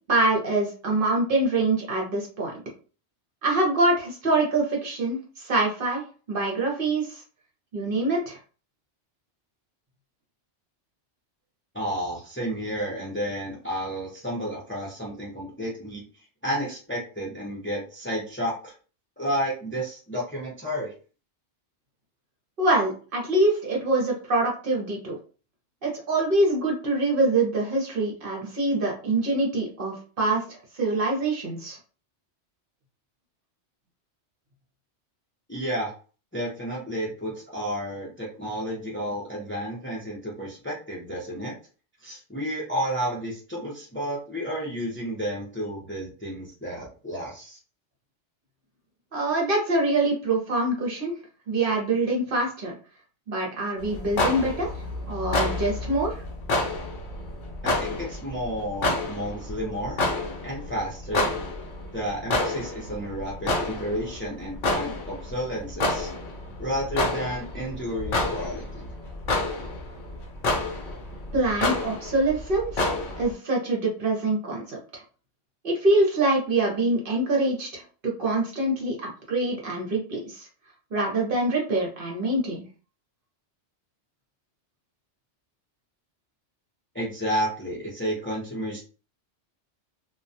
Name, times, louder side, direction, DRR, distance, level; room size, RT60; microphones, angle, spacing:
voice 1, 0.1-2.5 3.4-7.2 7.7-8.4 22.6-25.2 25.8-31.8 49.1-51.1 51.5-52.7 53.3-54.7 55.1-56.2 71.3-72.9 73.2-75.0 75.6-80.5 80.9-82.6, right 2 dB, 55° right, -1 dB, 0.9 m, -25 dB
voice 2, 11.7-16.0 16.4-18.7 19.2-20.9 35.5-35.9 36.3-41.5 42.0-47.6 57.6-60.0 60.4-61.3 61.9-66.1 66.6-68.9 86.9-88.8, equal, 15° left, -4 dB, 0.5 m, -31 dB
sound 1, 53.8-73.3, left 2 dB, 60° left, 0.6 m, -29 dB
2.2 x 2.2 x 2.6 m, 0.37 s
omnidirectional pair, 1.2 m